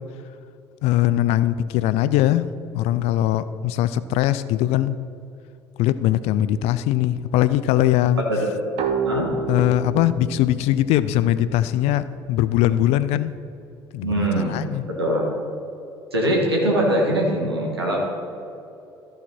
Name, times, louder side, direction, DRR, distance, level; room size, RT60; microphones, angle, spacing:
voice 1, 0.8-2.5 2.7-5.0 5.8-8.3 9.5-13.3 13.9-14.8, left 13 dB, 55° left, 15 dB, 0.4 m, -21 dB
sound 1, 8.8-12.3, right 4 dB, 50° right, 1.0 m, -30 dB
voice 2, 14.0-14.6 14.9-15.3 16.1-18.0, right 1 dB, 85° right, -3 dB, 1.6 m, -22 dB
14.0 x 5.0 x 4.3 m, 2.8 s
figure-of-eight pair, 60°, 13 cm